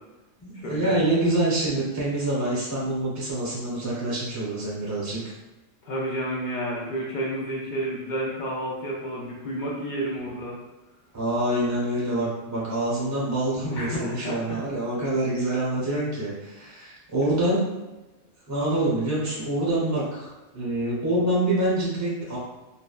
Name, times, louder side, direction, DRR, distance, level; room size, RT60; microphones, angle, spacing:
voice 1, 0.4-5.2 11.1-17.6 18.5-22.4, right 1 dB, 15° right, -7 dB, 0.7 m, -26 dB
voice 2, 5.8-10.6 13.7-14.6, right 1 dB, 60° left, -4 dB, 0.5 m, -30 dB
2.7 x 2.1 x 2.2 m, 1.1 s
omnidirectional pair, 1.3 m